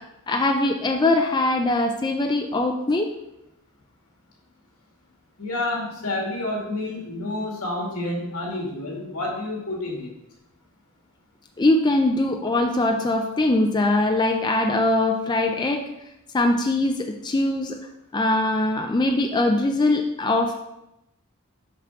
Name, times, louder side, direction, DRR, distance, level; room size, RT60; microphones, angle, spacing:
voice 1, 0.0-3.1 11.6-15.9 16.3-17.8 18.1-20.5, left 2 dB, 20° left, 3 dB, 0.4 m, -22 dB
voice 2, 5.4-10.1, left 2 dB, 75° left, -1 dB, 2.2 m, -29 dB
5.9 x 5.9 x 4.7 m, 0.89 s
head